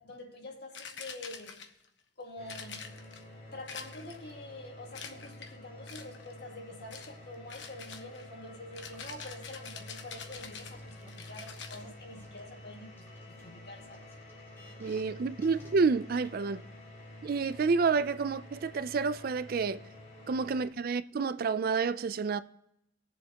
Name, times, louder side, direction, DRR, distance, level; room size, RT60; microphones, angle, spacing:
voice 1, 0.0-1.6 2.2-2.9 3.5-14.1, left 1 dB, 65° left, 1.9 m, -47 dB
sound 1, 0.7-1.9 2.5-3.2 3.7-4.3 4.9-5.5 5.9-6.3 6.9-7.2 7.5-11.8, left 6 dB, 80° left, 1.1 m, -46 dB
sound 2, 2.4-20.7, left 1 dB, 45° left, 3.3 m, -49 dB
sound 3, 8.9-9.5 10.1-12.5 13.0-15.1 15.4-15.7 16.1-16.3, left 1 dB, 15° left, 3.7 m, -57 dB
voice 2, 14.8-16.6 17.2-19.8 20.3-22.4, right 4 dB, 55° right, 0.4 m, -29 dB
20.0 x 7.4 x 2.9 m
head